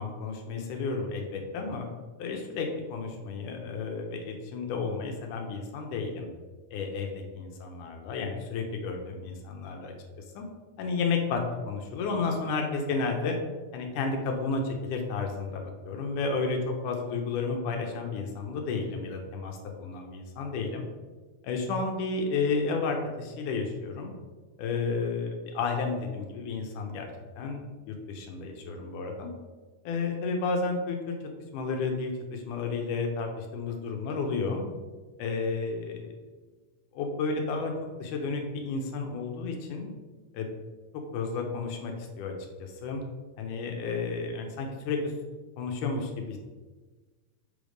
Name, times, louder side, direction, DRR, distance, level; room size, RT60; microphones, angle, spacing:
voice 1, 0.0-1.9 2.2-6.3 6.7-9.9 10.4-10.5 10.8-13.4 13.7-20.9 21.4-24.1 24.6-27.1 27.4-29.3 29.9-31.1 31.5-34.7 35.2-36.1 36.9-37.7 38.0-39.9 40.3-40.5 41.1-42.3 42.6-43.0 43.4-45.1 45.6-46.4, left 4 dB, 80° left, 2 dB, 2.2 m, -32 dB
7.0 x 3.4 x 5.1 m, 1.3 s
omnidirectional pair, 3.7 m